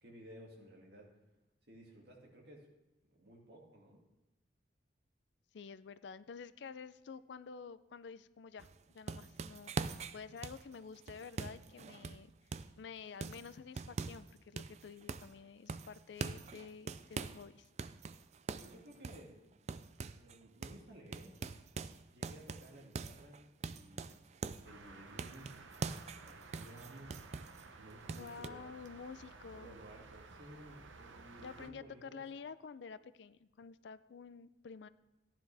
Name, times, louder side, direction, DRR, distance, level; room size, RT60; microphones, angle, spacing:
voice 1, 0.0-1.1 1.7-2.7 3.2-4.0 18.6-19.4 20.1-21.5 22.1-24.2 24.6-25.6 26.2-27.2 27.8-28.7 29.6-32.2, right 1 dB, 60° right, -1 dB, 2.3 m, -55 dB
voice 2, 5.5-12.3 12.8-17.7 28.2-29.8 31.4-34.9, left 5 dB, 70° left, 15 dB, 0.4 m, -50 dB
sound 1, 8.6-12.8 13.2-14.3 14.6-15.4 15.7-17.5 17.8-20.4 20.6-20.8 21.1-24.7 25.2-27.7 28.1-28.5, right 4 dB, 35° right, 0.3 m, -43 dB
sound 2, 24.6-31.7, right 3 dB, 90° right, 0.9 m, -55 dB
14.5 x 10.0 x 3.4 m, 1.0 s
head